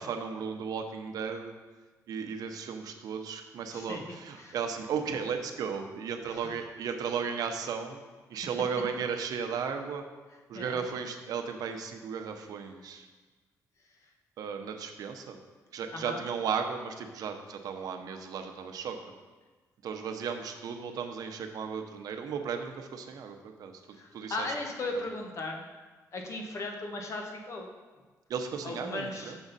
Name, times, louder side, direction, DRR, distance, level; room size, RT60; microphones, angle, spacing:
voice 1, 0.0-1.5 2.1-8.0 8.3-10.0 10.5-13.1 14.4-15.4 15.7-19.0 19.8-23.7 24.1-24.6 28.3-29.4, right 6 dB, 75° right, 5 dB, 0.7 m, -35 dB
voice 2, 3.7-4.0 4.4-4.5 6.2-6.5 10.5-10.8 15.9-16.2 24.0-25.6 26.1-27.7 28.6-29.3, left 2 dB, 50° left, 2 dB, 1.1 m, -37 dB
7.2 x 6.2 x 4.0 m, 1.3 s
cardioid pair, 120°, 7 cm